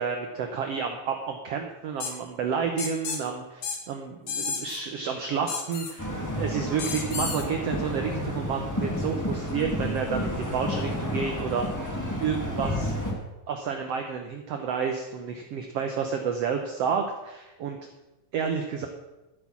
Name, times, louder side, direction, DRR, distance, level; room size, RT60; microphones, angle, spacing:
voice 1, 0.0-11.7 12.2-12.9 13.5-17.8 18.3-18.9, right 6 dB, 90° right, 4 dB, 1.3 m, -30 dB
sound 1, 2.0-2.1 2.8-3.2 3.6-3.8 4.3-4.8 5.5-5.9 6.8-7.4, left 5 dB, 60° left, 1.4 m, -32 dB
sound 2, 6.0-13.1, left 1 dB, 15° left, 0.7 m, -31 dB
12.5 x 8.2 x 6.0 m, 1.0 s
omnidirectional pair, 4.1 m